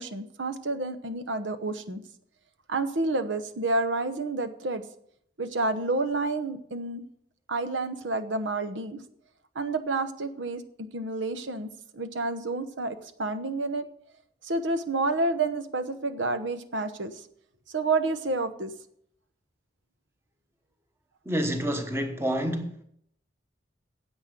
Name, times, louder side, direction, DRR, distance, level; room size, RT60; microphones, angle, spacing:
voice 1, 0.0-2.0 2.7-4.8 5.4-7.0 7.5-9.0 9.5-13.8 14.4-17.2 17.7-18.7, right 3 dB, 90° right, 1.0 m, -29 dB
voice 2, 21.2-22.8, equal, 15° right, 1.1 m, -28 dB
9.8 x 8.1 x 6.6 m
head